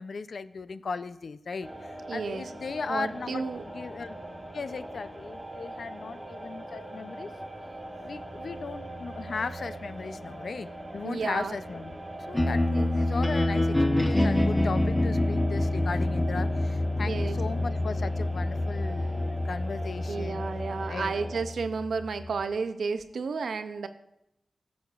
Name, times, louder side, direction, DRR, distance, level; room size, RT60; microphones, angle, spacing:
voice 1, 0.0-4.1 4.5-7.3 8.0-12.0 12.3-12.6 12.9-20.4 20.9-21.1, left 4 dB, 75° left, 13 dB, 0.4 m, -37 dB
sound 1, 1.6-21.4, right 1 dB, 25° right, 1.9 m, -41 dB
voice 2, 2.1-2.5 2.9-3.6 11.0-11.6 12.7-12.9 17.0-17.4 20.1-23.9, right 4 dB, 90° right, 10 dB, 0.5 m, -32 dB
sound 2, 12.3-22.4, left 1 dB, 20° left, 0.9 m, -27 dB
14.5 x 7.1 x 2.4 m, 0.84 s
cardioid pair, 60°, 0 cm